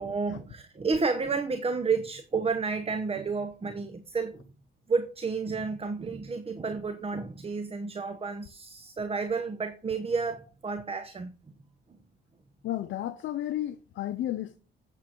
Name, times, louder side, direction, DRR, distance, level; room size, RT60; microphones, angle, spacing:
voice 1, 0.0-4.4 4.9-11.3, right 4 dB, 30° right, 1.0 m, -31 dB
voice 2, 12.6-14.6, left 13 dB, 70° left, 0.7 m, -32 dB
8.7 x 7.1 x 4.5 m
cardioid pair, 90°, 20 cm